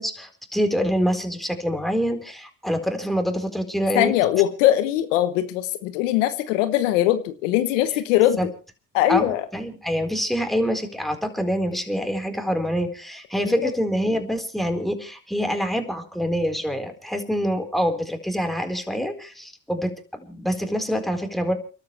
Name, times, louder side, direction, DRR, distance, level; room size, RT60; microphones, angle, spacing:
voice 1, 0.0-4.1 8.4-8.5 9.1-21.5, equal, ahead, 4 dB, 4.4 m, -26 dB
voice 2, 3.9-8.5 8.9-9.5 13.4-13.7, left 13 dB, 85° left, 11 dB, 1.1 m, -21 dB
30.0 x 12.5 x 3.3 m, 0.36 s
hypercardioid pair, 50°, 37 cm